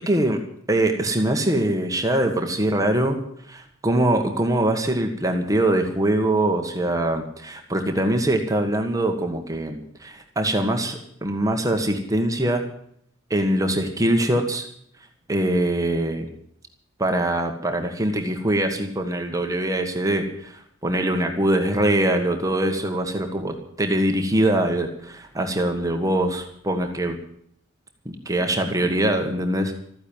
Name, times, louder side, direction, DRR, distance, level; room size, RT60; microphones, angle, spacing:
voice 1, 0.1-0.4 0.7-3.2 3.5-12.6 13.3-14.7 15.3-16.3 17.0-27.2 28.0-29.7, right 1 dB, 15° right, 4 dB, 1.5 m, -23 dB
14.0 x 10.0 x 8.8 m, 0.66 s
head